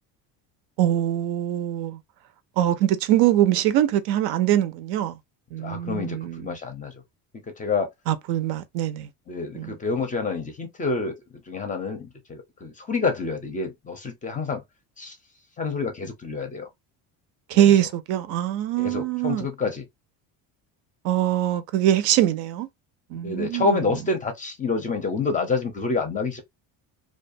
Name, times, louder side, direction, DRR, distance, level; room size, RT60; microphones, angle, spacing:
voice 1, 0.8-2.0 2.6-5.1 5.5-6.6 8.1-9.1 9.5-9.8 17.5-19.5 21.0-22.7 23.1-23.8, right 12 dB, 70° right, 0.5 m, -23 dB
voice 2, 5.6-6.9 7.6-7.9 9.3-11.1 11.5-14.6 15.0-15.2 15.6-16.7 17.5-17.7 18.8-19.9 23.1-26.4, left 4 dB, 20° left, 0.5 m, -28 dB
2.3 x 2.2 x 2.5 m
cardioid pair, 115°, 40 cm